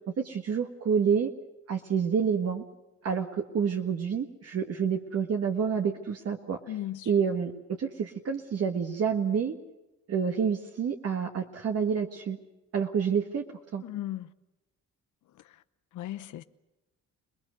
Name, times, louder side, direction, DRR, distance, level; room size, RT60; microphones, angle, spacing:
voice 1, 0.2-1.3 1.7-2.6 3.0-6.8 7.0-7.5 7.8-9.5 10.1-12.4 12.7-13.4 13.7-13.8, right 6 dB, 55° right, 1.7 m, -28 dB
voice 2, 6.7-7.1 13.8-14.3 15.4-15.6 15.9-16.4, left 13 dB, 80° left, 1.0 m, -36 dB
26.5 x 20.0 x 6.7 m
cardioid pair, 90°, 30 cm